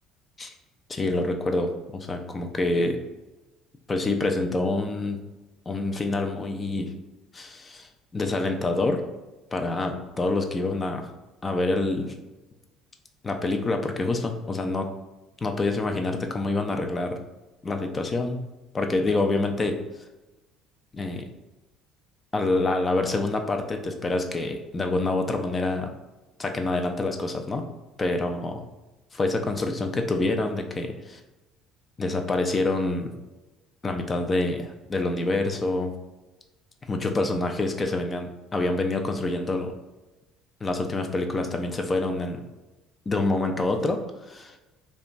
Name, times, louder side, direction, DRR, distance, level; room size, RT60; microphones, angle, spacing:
voice 1, 0.9-3.0 3.9-5.2 5.7-6.9 7.3-9.0 9.5-11.1 11.4-12.1 13.2-14.9 15.4-17.2 17.6-18.4 18.7-19.8 20.9-21.3 22.3-25.9 26.4-27.7 28.0-28.5 29.1-31.2 32.0-33.1 33.8-35.9 36.9-39.7 40.6-42.4 43.1-44.0 44.3-44.6, left 2 dB, 25° left, 5 dB, 0.3 m, -26 dB
2.9 x 2.2 x 2.4 m, 1.1 s
supercardioid pair, 95°, 0 cm